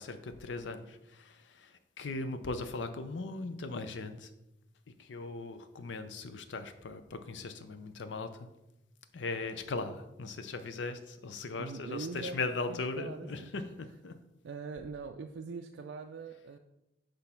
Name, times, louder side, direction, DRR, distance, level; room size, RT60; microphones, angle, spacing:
voice 1, 0.0-1.7 2.0-4.3 5.0-8.5 9.1-14.1, left 3 dB, 85° left, 10 dB, 0.6 m, -39 dB
voice 2, 11.6-12.4 12.7-13.5 14.4-16.6, right 4 dB, 85° right, 4 dB, 0.4 m, -42 dB
6.1 x 3.3 x 5.6 m, 0.92 s
head